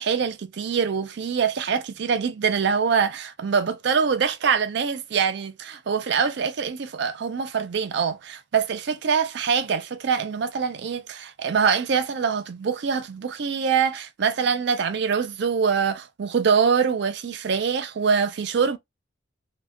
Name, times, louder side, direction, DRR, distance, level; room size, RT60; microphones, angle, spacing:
voice 1, 0.0-18.8, right 6 dB, 60° right, 0.4 m, -24 dB
2.1 x 2.1 x 3.5 m
head